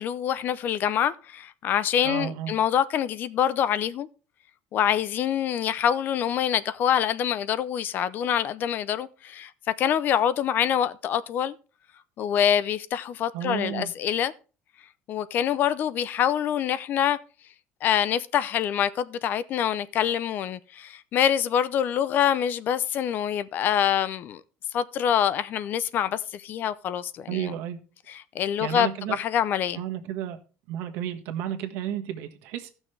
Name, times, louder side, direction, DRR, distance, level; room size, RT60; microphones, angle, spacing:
voice 1, 0.0-4.1 4.7-9.5 9.8-11.5 12.2-14.3 15.1-17.2 17.8-24.4 24.7-27.5 28.1-29.8, left 9 dB, 45° left, 0.5 m, -25 dB
voice 2, 2.0-2.5 13.3-13.9 27.3-27.8 28.6-29.2 29.7-30.4 30.7-32.7, right 10 dB, 75° right, 1.4 m, -32 dB
15.5 x 6.2 x 3.3 m
cardioid pair, 140°, 4 cm